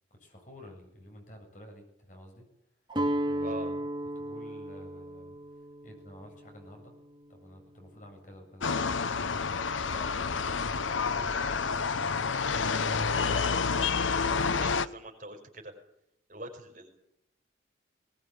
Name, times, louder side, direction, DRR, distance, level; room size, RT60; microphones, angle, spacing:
voice 1, 0.2-2.5 3.3-3.8 4.1-6.9 7.3-9.2 9.5-12.3, left 1 dB, 40° left, 2 dB, 7.8 m, -51 dB
Guitar, 2.9-8.9, right 1 dB, 25° right, 2.3 m, -36 dB
voice 2, 3.4-3.7 14.6-15.7 16.3-16.9, right 1 dB, 45° right, 3 dB, 5.3 m, -43 dB
sound 1, 8.6-14.9, left 5 dB, 90° left, 0.9 m, -29 dB
20.5 x 20.0 x 8.5 m, 0.77 s
head